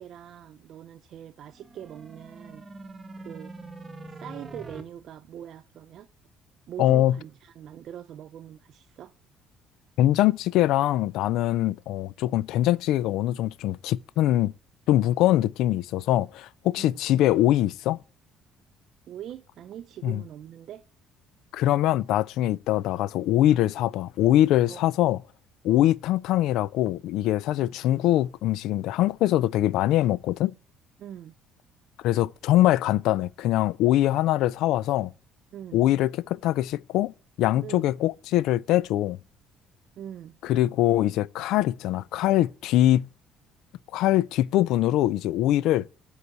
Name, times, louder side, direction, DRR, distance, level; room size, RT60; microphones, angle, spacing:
voice 1, 0.0-2.7 3.2-3.6 4.1-6.1 6.7-9.1 16.7-17.0 19.1-20.8 24.7-24.9 25.7-25.9 27.6-27.8 31.0-31.3 35.5-35.8 37.6-37.9 40.0-40.4, right 10 dB, 50° right, 0.4 m, -42 dB
sound 1, 1.5-4.8, right 2 dB, 20° right, 1.0 m, -43 dB
voice 2, 6.8-7.2 10.0-14.5 14.9-18.0 20.0-20.2 21.5-25.2 25.6-30.5 32.0-35.1 35.7-39.2 40.4-43.1 43.9-45.9, left 14 dB, 70° left, 0.3 m, -23 dB
7.9 x 4.8 x 6.8 m
cardioid pair, 145°, 0 cm